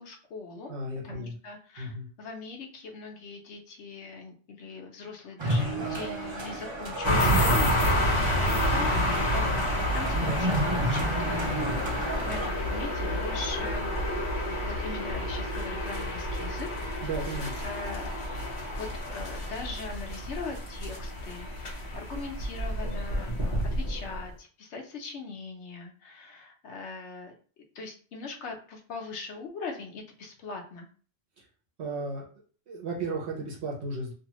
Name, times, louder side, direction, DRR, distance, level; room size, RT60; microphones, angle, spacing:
voice 1, 0.0-0.7 1.0-11.6 12.2-13.9 14.6-16.7 17.4-18.1 18.7-27.3 27.7-30.9, left 4 dB, 70° left, 2 dB, 0.9 m, -40 dB
voice 2, 0.7-1.3 1.8-2.1 17.0-17.5 31.8-32.2 32.7-34.1, right 2 dB, 65° right, -2 dB, 1.0 m, -34 dB
sound 1, 5.4-12.5, right 1 dB, 40° right, 0.4 m, -32 dB
sound 2, 7.0-24.3, equal, 40° left, 0.9 m, -29 dB
2.7 x 2.3 x 2.9 m, 0.40 s
omnidirectional pair, 1.3 m